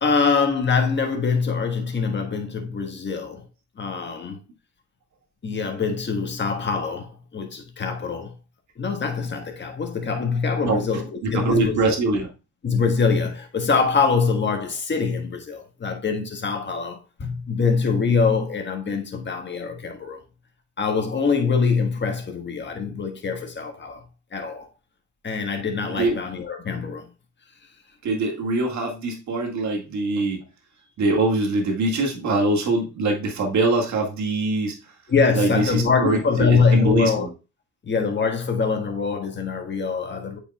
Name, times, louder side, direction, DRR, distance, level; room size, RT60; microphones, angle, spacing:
voice 1, 0.0-3.4 3.8-4.4 5.4-8.3 8.8-11.8 12.6-20.2 20.8-24.0 24.3-24.7 25.2-27.1 35.1-37.3 37.8-40.4, left 5 dB, 40° left, 1.5 m, -24 dB
voice 2, 11.2-12.3 25.9-26.2 28.0-30.4 31.0-34.8 35.3-36.2 36.5-37.3, right 2 dB, 65° right, 2.0 m, -23 dB
8.4 x 5.3 x 2.3 m
cardioid pair, 90°, 30 cm